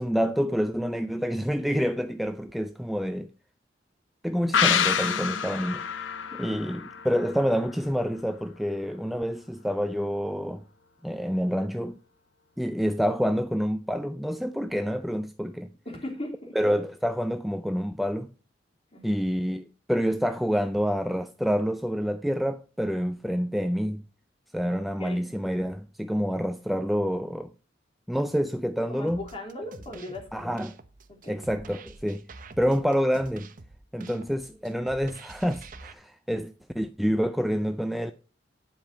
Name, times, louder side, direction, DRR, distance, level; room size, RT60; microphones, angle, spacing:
voice 1, 0.0-3.3 4.2-5.9 6.4-10.6 11.0-12.0 12.6-15.7 16.6-18.3 19.0-24.0 24.5-27.5 28.1-29.3 30.3-30.8 31.3-32.2 32.6-33.5 33.9-38.1, equal, ahead, 0.4 m, -27 dB
sound 1, 4.5-8.0 8.3-8.4, left 7 dB, 80° left, 0.7 m, -27 dB
voice 2, 6.3-6.7 15.8-16.6 18.9-19.2 24.6-25.2 26.3-26.4 28.9-30.6 31.1-31.4 34.0-34.2, left 1 dB, 30° left, 3.0 m, -39 dB
sound 2, 29.1-35.9, right 3 dB, 45° right, 0.9 m, -47 dB
10.5 x 5.2 x 5.5 m
head